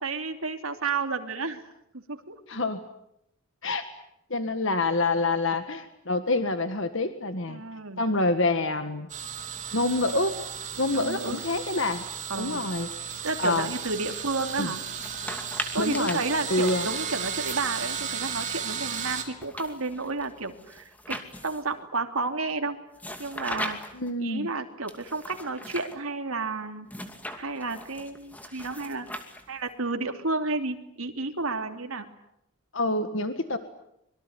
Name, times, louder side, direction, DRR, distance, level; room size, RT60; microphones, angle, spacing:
voice 1, 0.0-1.6 1.9-2.4 7.5-8.0 10.9-11.4 12.3-12.6 13.2-14.8 15.7-22.8 23.2-23.8 24.2-26.9 27.4-29.1 29.5-32.0, right 3 dB, 75° right, 6 dB, 2.9 m, -31 dB
voice 2, 2.5-2.8 3.6-3.9 4.3-7.6 8.0-9.1 9.7-10.3 10.8-12.0 12.3-13.7 14.6-14.7 15.8-16.2 16.5-16.9 23.9-24.5 32.7-33.6, left 2 dB, 60° left, 9 dB, 1.7 m, -27 dB
sound 1, 9.1-19.2, right 7 dB, 35° right, 3.8 m, -35 dB
sound 2, 14.9-18.3 18.9-21.8 23.0-24.1 24.9-26.0 26.9-29.7, left 1 dB, 5° left, 2.5 m, -40 dB
25.5 x 23.5 x 9.7 m, 0.79 s
head